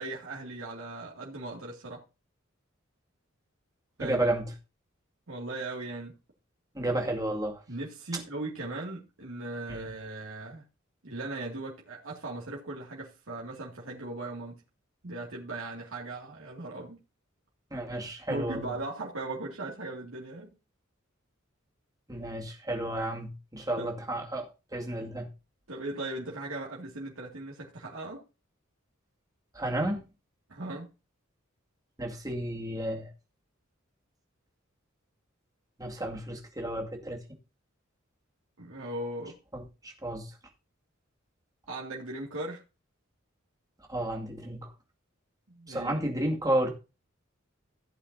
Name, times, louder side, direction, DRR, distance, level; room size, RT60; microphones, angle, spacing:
voice 1, 0.0-2.0 4.0-4.2 5.3-6.1 7.7-10.6 11.0-14.6 15.0-17.0 18.3-20.5 23.8-23.9 25.7-28.2 30.5-30.9 38.6-39.4 41.7-42.6 45.5-46.0, right 2 dB, 85° right, 2.3 m, -38 dB
voice 2, 4.0-4.5 6.7-7.6 9.7-9.9 17.7-18.7 22.1-25.3 29.5-30.1 32.0-33.1 35.8-37.2 39.5-40.4 43.9-44.7 45.7-46.7, right 1 dB, 20° right, 2.1 m, -32 dB
15.5 x 8.4 x 2.7 m
head